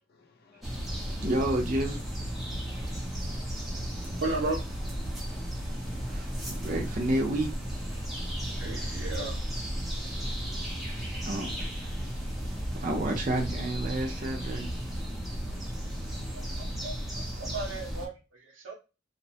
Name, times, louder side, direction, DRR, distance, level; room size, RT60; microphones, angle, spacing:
voice 1, 0.5-1.2 2.5-2.8 3.1-3.4 3.9-4.1 5.3-6.2 8.5-8.7 9.9-11.1 15.4-16.7, left 4 dB, 50° left, 0.4 m, -59 dB
sound 1, 0.6-18.1, equal, ahead, 0.6 m, -34 dB
voice 2, 1.2-2.0 6.1-7.5 7.8-8.1 11.2-11.5 11.8-11.9 12.7-14.7, right 1 dB, 40° right, 0.6 m, -30 dB
voice 3, 4.2-4.6 8.6-9.4 16.3-18.7, right 2 dB, 85° right, 0.6 m, -35 dB
2.8 x 2.1 x 2.8 m
head